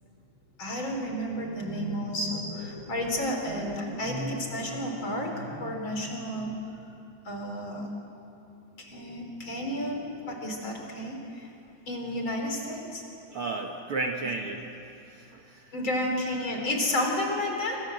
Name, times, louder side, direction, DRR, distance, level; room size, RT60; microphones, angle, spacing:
voice 1, 0.6-6.5 7.2-8.0 8.8-11.5 11.9-13.0 15.7-17.8, left 1 dB, 40° left, 2 dB, 4.6 m, -31 dB
voice 2, 13.3-14.7 15.0-15.7, right 3 dB, 55° right, 2 dB, 2.1 m, -33 dB
27.0 x 26.0 x 7.9 m, 2.7 s
omnidirectional pair, 3.5 m